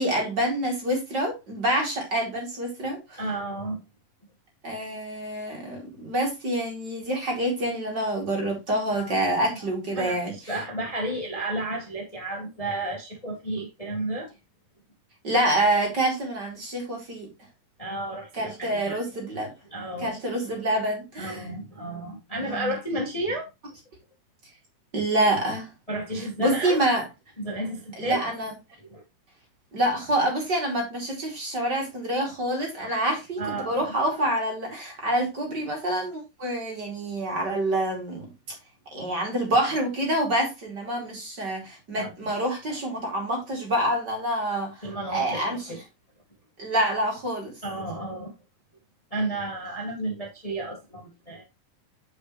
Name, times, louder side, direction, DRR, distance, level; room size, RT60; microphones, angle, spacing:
voice 1, 0.0-3.2 4.6-10.3 15.2-17.3 18.4-19.5 20.0-21.4 22.4-22.7 24.9-25.7 26.4-27.0 28.0-28.5 29.7-38.3 38.9-45.8 46.6-47.5, right 1 dB, 30° right, 3.0 m, -27 dB
voice 2, 3.2-3.8 8.9-9.1 9.9-14.3 17.8-18.3 18.6-19.0 19.7-20.2 21.2-23.5 25.9-26.8 27.4-28.2 28.9-29.0 33.4-33.9 42.0-42.3 44.8-45.8 47.6-48.3 49.1-51.4, right 1 dB, 25° left, 0.7 m, -32 dB
8.8 x 5.6 x 3.1 m
omnidirectional pair, 4.1 m